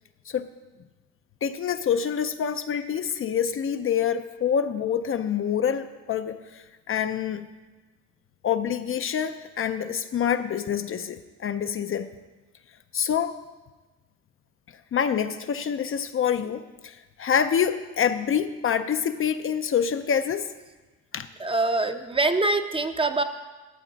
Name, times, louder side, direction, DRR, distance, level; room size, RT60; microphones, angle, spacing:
voice 1, 1.4-7.5 8.4-12.1 12.9-13.4 14.9-20.5 21.1-21.3, left 8 dB, 45° left, 9 dB, 0.5 m, -26 dB
voice 2, 21.4-23.2, right 2 dB, 20° right, 8 dB, 0.6 m, -24 dB
12.5 x 7.4 x 4.0 m, 1.2 s
cardioid pair, 90°, 30 cm